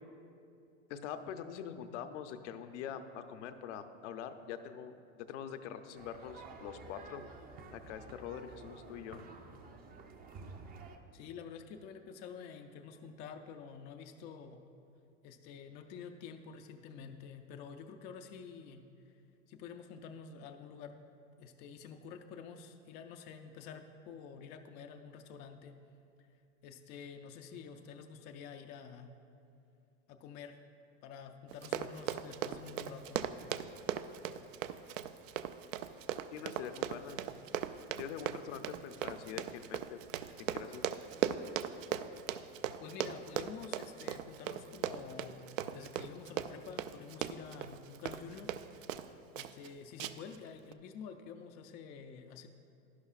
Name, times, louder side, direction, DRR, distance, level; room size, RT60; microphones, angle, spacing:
voice 1, 0.9-4.9 5.3-7.2 7.7-9.2 36.3-37.2 38.0-40.0 40.5-40.8, left 8 dB, 65° left, 8 dB, 0.7 m, -44 dB
sound 1, 6.0-11.0, right 4 dB, 25° right, 0.5 m, -51 dB
voice 2, 11.1-14.6 15.2-19.1 19.5-21.0 21.4-25.8 26.2-26.3 26.6-29.1 30.1-30.6 31.0-33.2 42.8-45.5 45.7-48.5 49.3-52.5, left 6 dB, 30° left, 6 dB, 0.3 m, -49 dB
Run, 31.5-49.1 49.4-49.7 50.0-50.4 50.7-50.8, right 10 dB, 75° right, 0.5 m, -38 dB
11.0 x 11.0 x 2.4 m, 2.6 s
supercardioid pair, 125°, 38 cm